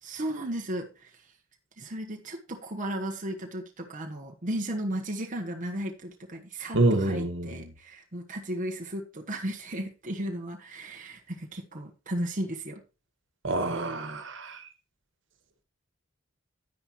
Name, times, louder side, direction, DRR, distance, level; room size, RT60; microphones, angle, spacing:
voice 1, 0.0-1.3 1.8-12.8, right 1 dB, 40° right, 1.3 m, -35 dB
voice 2, 6.7-7.7 13.4-14.6, right 2 dB, 65° right, 1.7 m, -27 dB
10.0 x 9.8 x 3.1 m
head